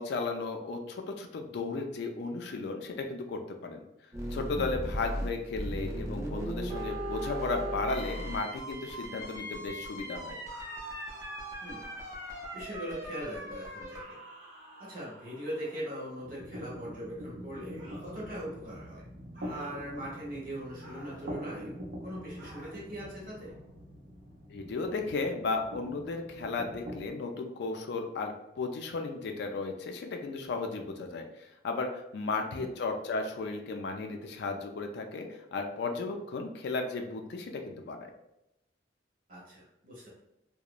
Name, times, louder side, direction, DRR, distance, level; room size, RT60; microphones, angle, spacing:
voice 1, 0.0-3.8 4.3-10.4 24.5-38.1, left 3 dB, 65° left, 4 dB, 0.3 m, -35 dB
sound 1, 4.1-14.0, right 1 dB, 15° right, 0.5 m, -38 dB
sound 2, 10.4-12.8 13.9-16.1 17.8-18.2 19.3-19.8 20.8-21.3 22.4-22.8, right 1 dB, 90° right, 0.9 m, -50 dB
voice 2, 12.5-14.2 14.8-19.0 19.4-21.8 22.0-23.5 32.4-32.7 39.3-40.1, equal, 50° right, -5 dB, 1.1 m, -41 dB
sound 3, 16.2-27.1, equal, 70° right, 0.6 m, -44 dB
2.8 x 2.1 x 2.3 m, 0.88 s
head